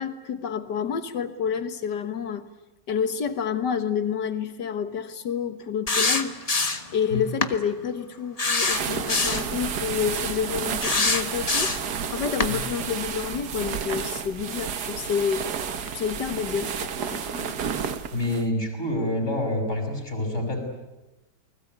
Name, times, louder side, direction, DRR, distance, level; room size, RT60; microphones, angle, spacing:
voice 1, 0.0-2.5 2.9-6.4 6.9-11.7 12.1-15.5 15.9-17.6, left 7 dB, 75° left, 10 dB, 2.0 m, -29 dB
sound 1, 5.9-6.9 7.4-7.6 8.4-9.5 10.8-11.9 12.4-12.5, left 3 dB, 25° left, 1.3 m, -24 dB
sound 2, 8.6-18.5, right 7 dB, 65° right, 1.8 m, -31 dB
voice 2, 18.1-20.6, left 1 dB, 40° left, 3 dB, 6.8 m, -27 dB
29.0 x 20.5 x 9.5 m, 1.0 s
omnidirectional pair, 1.9 m